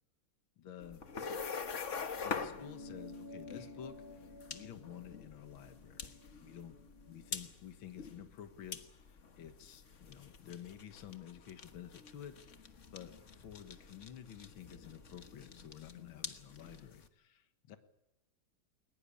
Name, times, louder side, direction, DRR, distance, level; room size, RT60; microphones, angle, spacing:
voice 1, 0.6-1.1 2.2-6.1 6.4-6.8 7.1-17.8, left 9 dB, 70° left, 8 dB, 2.1 m, -51 dB
sound 1, 0.8-17.1, left 5 dB, 40° left, 1.4 m, -46 dB
sound 2, 2.6-7.4, left 2 dB, 65° right, 7.6 m, -53 dB
sound 3, 10.6-15.9, left 1 dB, 15° left, 6.6 m, -69 dB
21.0 x 20.0 x 8.6 m, 0.89 s
omnidirectional pair, 2.3 m